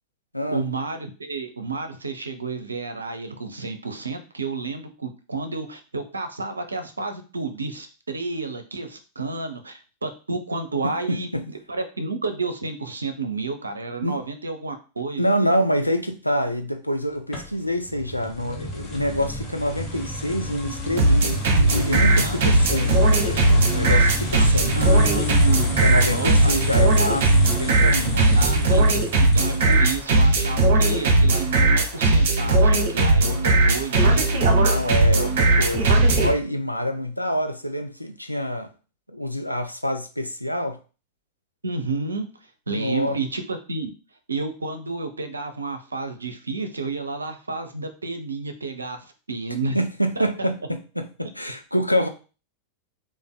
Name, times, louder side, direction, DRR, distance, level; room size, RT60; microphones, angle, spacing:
voice 1, 0.5-15.2 22.1-22.4 24.4-24.5 24.7-25.8 26.1-26.7 28.4-28.8 29.2-34.3 41.6-42.3 42.7-43.9 44.3-49.8 50.2-50.3, right 3 dB, 75° right, 7 dB, 0.6 m, -31 dB
voice 2, 10.8-11.4 14.0-14.1 15.2-24.7 25.8-28.4 34.5-38.7 39.1-40.8 42.7-43.2 49.7-52.1, equal, 90° left, 6 dB, 0.5 m, -26 dB
sound 1, 17.3-30.0, left 1 dB, 30° left, 1.2 m, -31 dB
sound 2, 21.0-36.3, right 2 dB, 55° right, 0.9 m, -18 dB
3.4 x 2.5 x 3.8 m, 0.34 s
figure-of-eight pair, 90°, 0 cm